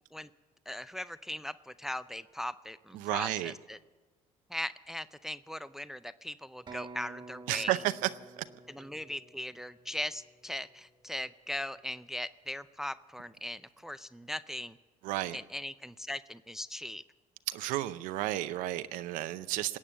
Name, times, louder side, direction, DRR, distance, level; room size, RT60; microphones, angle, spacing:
voice 1, 0.7-3.8 4.5-7.8 8.7-14.8 15.3-17.0, left 1 dB, 5° right, 15 dB, 0.4 m, -39 dB
voice 2, 2.9-3.5 7.5-8.1 8.4-8.5 15.0-15.4 17.5-19.8, right 15 dB, 80° right, 12 dB, 0.6 m, -32 dB
sound 1, 6.7-10.4, right 3 dB, 35° right, 1.4 m, -50 dB
20.0 x 8.7 x 7.5 m, 1.3 s
cardioid pair, 95°, 14 cm